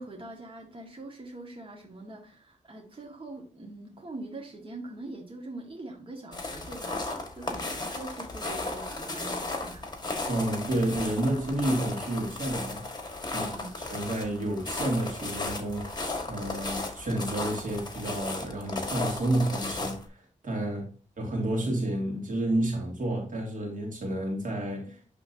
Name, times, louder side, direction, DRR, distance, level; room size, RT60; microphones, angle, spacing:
voice 1, 0.0-9.9 13.3-13.7 20.7-20.8, right 2 dB, 40° right, 1.7 m, -43 dB
sound 1, 6.3-20.0, left 2 dB, 30° left, 1.6 m, -35 dB
voice 2, 10.3-12.8 13.3-13.4 13.9-20.9 21.2-25.0, right 1 dB, 75° right, 2.3 m, -30 dB
11.0 x 3.7 x 2.7 m
cardioid pair, 70°, 14 cm